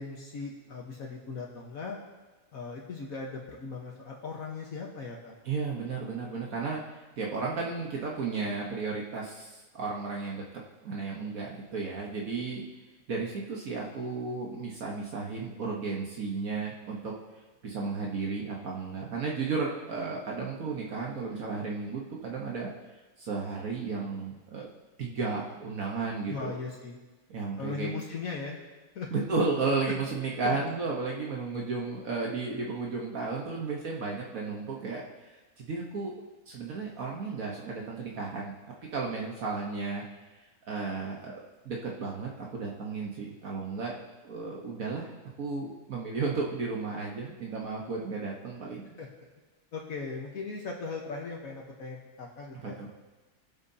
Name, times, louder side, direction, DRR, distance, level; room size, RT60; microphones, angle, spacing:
voice 1, 0.0-2.0 2.5-5.3 26.3-27.0 27.6-28.6 28.9-29.1 29.8-29.9 30.4-30.6 49.0-49.1 49.7-52.7, left 4 dB, 65° left, -1 dB, 1.6 m, -38 dB
voice 2, 5.4-12.6 13.1-17.2 17.6-22.7 23.2-24.7 25.0-26.6 27.3-28.0 29.1-36.1 36.5-38.5 38.9-40.0 40.7-45.1 45.4-49.0 52.6-52.9, right 4 dB, 65° right, -2 dB, 1.6 m, -34 dB
20.0 x 8.0 x 2.8 m, 1.2 s
omnidirectional pair, 1.6 m